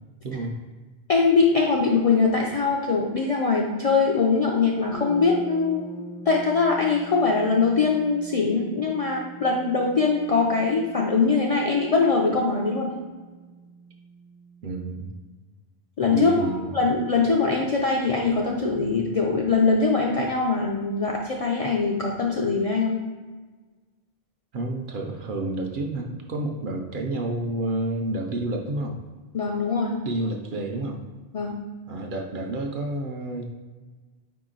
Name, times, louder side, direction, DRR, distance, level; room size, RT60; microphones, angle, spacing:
voice 1, 1.1-13.0 16.0-23.0 29.3-30.0 31.3-31.6, left 4 dB, 55° left, -2 dB, 0.4 m, -22 dB
sound 1, 4.9-14.7, equal, 90° left, 1.0 m, -43 dB
voice 2, 14.6-15.1 16.1-16.7 24.5-29.0 30.1-31.0 31.9-33.5, right 2 dB, 60° right, 2 dB, 0.6 m, -29 dB
4.7 x 2.9 x 3.7 m, 1.3 s
omnidirectional pair, 1.1 m